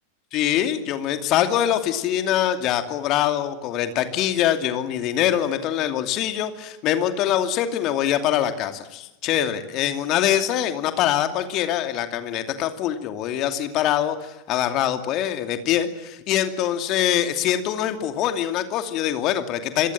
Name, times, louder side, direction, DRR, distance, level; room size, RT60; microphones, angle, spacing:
voice 1, 0.3-19.9, left 11 dB, 35° left, 8 dB, 2.6 m, -24 dB
27.0 x 22.0 x 7.5 m, 0.96 s
figure-of-eight pair, 90°, 0 cm